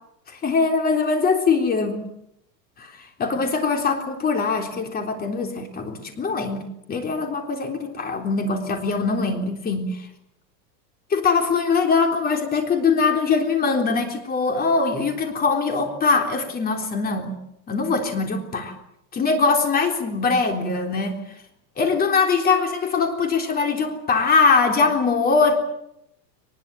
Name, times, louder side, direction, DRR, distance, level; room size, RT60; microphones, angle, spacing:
voice 1, 0.3-2.1 2.8-2.9 3.2-10.1 11.1-17.3 17.7-18.7 19.1-21.2 21.8-25.6, left 4 dB, 20° left, 5 dB, 3.6 m, -22 dB
22.5 x 20.5 x 9.2 m, 0.79 s
supercardioid pair, 155°, 49 cm